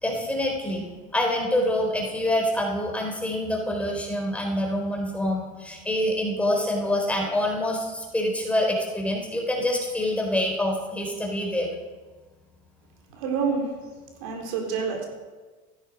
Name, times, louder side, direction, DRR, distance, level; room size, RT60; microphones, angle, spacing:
voice 1, 0.0-11.7, left 1 dB, 5° left, 0 dB, 3.8 m, -26 dB
voice 2, 13.1-13.6 14.2-15.1, right 5 dB, 80° right, 1 dB, 3.9 m, -27 dB
15.5 x 12.5 x 5.2 m, 1.3 s
supercardioid pair, 105°, 18 cm